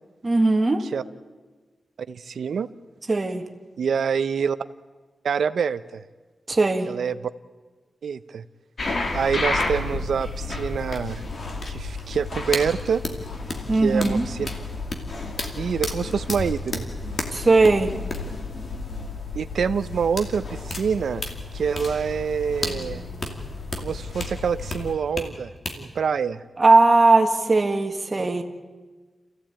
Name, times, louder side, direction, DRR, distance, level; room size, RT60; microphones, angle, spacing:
voice 1, 0.2-0.8 3.1-3.4 6.5-6.9 13.7-14.3 17.3-17.9 26.6-28.4, right 3 dB, 25° right, 5 dB, 1.7 m, -18 dB
voice 2, 2.1-2.7 3.8-4.6 5.2-6.0 6.9-7.2 8.0-8.4 9.1-11.2 11.7-13.0 13.8-14.5 15.6-16.9 19.3-21.2 21.5-23.0 23.8-25.5 25.8-26.4, right 6 dB, 90° right, 13 dB, 0.8 m, -26 dB
sound 1, 8.8-25.2 25.7-25.8, left 3 dB, 45° left, 2.5 m, -31 dB
27.5 x 15.5 x 8.9 m, 1.4 s
wide cardioid pair, 170°, 0 cm